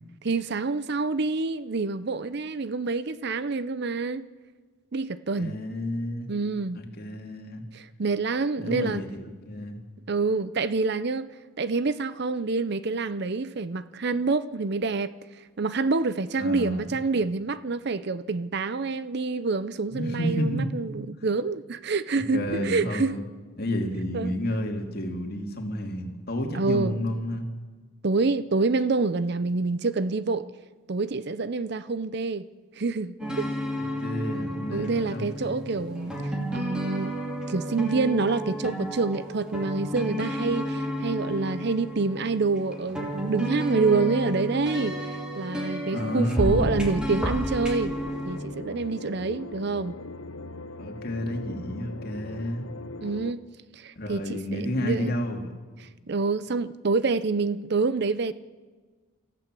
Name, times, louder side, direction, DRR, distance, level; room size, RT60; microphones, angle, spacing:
voice 1, 0.2-4.3 4.9-5.6 6.3-6.8 7.7-9.0 10.1-11.3 11.6-15.2 15.6-23.2 24.1-24.3 26.5-27.0 28.0-30.5 30.9-32.5 32.8-33.5 34.7-36.1 36.5-37.1 37.5-48.0 48.2-49.9 53.0-53.4 53.7-55.1 55.8-58.3, right 3 dB, 50° right, 0.6 m, -27 dB
voice 2, 5.4-6.3 6.7-7.6 8.6-9.8 16.4-16.9 19.9-20.7 22.3-23.2 23.6-27.5 33.8-35.6 45.9-46.9 50.8-52.7 54.0-55.5, equal, 45° left, 2.6 m, -30 dB
sound 1, 33.2-48.4, equal, 5° right, 2.6 m, -31 dB
sound 2, 47.8-53.3, left 2 dB, 85° left, 0.9 m, -40 dB
25.5 x 14.0 x 7.6 m
head